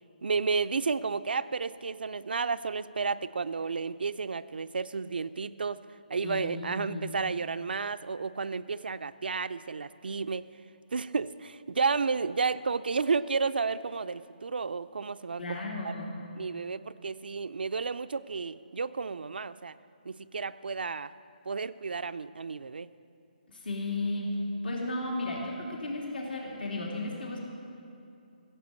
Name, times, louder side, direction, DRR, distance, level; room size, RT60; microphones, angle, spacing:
voice 1, 0.2-10.5 10.9-15.6 15.8-15.9 16.4-19.7 20.0-21.1 21.5-22.9, right 4 dB, 85° right, 13 dB, 0.4 m, -32 dB
voice 2, 6.2-7.1 15.4-16.2 23.5-24.4 24.6-27.4, left 2 dB, 75° left, -1 dB, 2.8 m, -34 dB
15.5 x 7.5 x 8.2 m, 2.6 s
hypercardioid pair, 160°, 5 cm